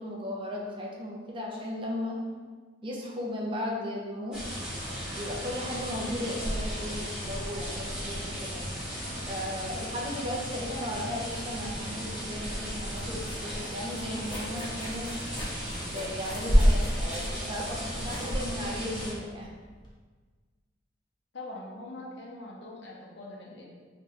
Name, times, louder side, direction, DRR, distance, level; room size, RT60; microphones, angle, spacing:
voice 1, 0.0-2.2 2.8-4.4 5.1-8.6 9.3-15.1 15.9-19.5, left 1 dB, 30° right, -1 dB, 0.5 m, -36 dB
sound 1, 4.3-19.1, equal, 5° right, 1.0 m, -36 dB
sound 2, 12.2-19.9, equal, 25° left, 0.6 m, -30 dB
voice 2, 21.3-23.7, left 2 dB, 70° left, -3 dB, 0.7 m, -42 dB
2.6 x 2.4 x 4.0 m, 1.4 s
head